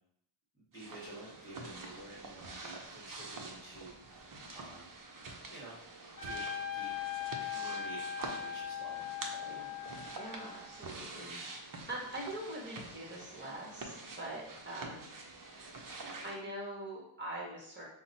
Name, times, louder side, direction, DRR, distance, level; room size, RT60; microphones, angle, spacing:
voice 1, 0.5-4.9 5.5-5.8 6.2-9.0, right 2 dB, 5° left, -9 dB, 1.3 m, -50 dB
sound 1, 0.7-16.4, right 3 dB, 45° right, 0.7 m, -47 dB
Trumpet, 6.2-10.9, left 8 dB, 45° left, 1.0 m, -40 dB
voice 2, 9.4-9.8 10.2-15.5 16.2-17.9, right 1 dB, 20° right, -3 dB, 1.2 m, -44 dB
5.8 x 2.1 x 4.0 m, 0.72 s
wide cardioid pair, 175°, 49 cm